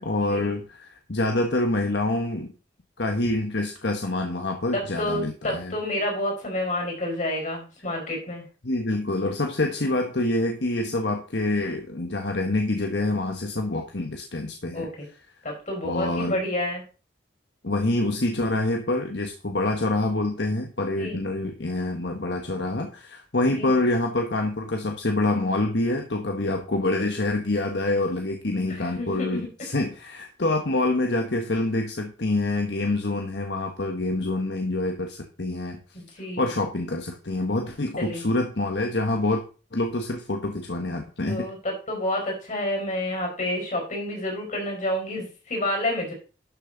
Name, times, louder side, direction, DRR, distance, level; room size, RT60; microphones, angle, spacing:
voice 1, 0.0-2.5 3.0-5.7 8.6-14.9 15.8-16.4 17.6-35.8 36.4-39.4 39.7-41.5, left 2 dB, 65° left, 4 dB, 1.3 m, -26 dB
voice 2, 4.7-8.4 14.7-15.1 15.4-16.8 21.0-21.2 23.5-23.8 28.7-29.5 35.9-36.4 38.0-38.2 41.3-46.1, left 1 dB, 45° left, 1 dB, 5.0 m, -29 dB
12.0 x 7.0 x 3.9 m, 0.35 s
head